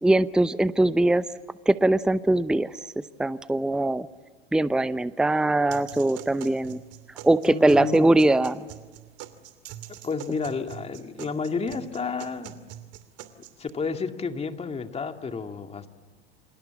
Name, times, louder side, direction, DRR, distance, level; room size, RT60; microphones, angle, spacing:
voice 1, 0.0-1.3 1.7-4.1 4.5-6.8 7.2-8.7, right 2 dB, ahead, 15 dB, 0.7 m, -22 dB
sound 1, 5.7-13.7, right 13 dB, 50° right, 2.7 m, -44 dB
voice 2, 7.5-8.1 10.0-12.5 13.4-15.9, left 5 dB, 20° left, 6 dB, 2.4 m, -31 dB
28.5 x 27.5 x 7.3 m, 1.4 s
hypercardioid pair, 90°, 31 cm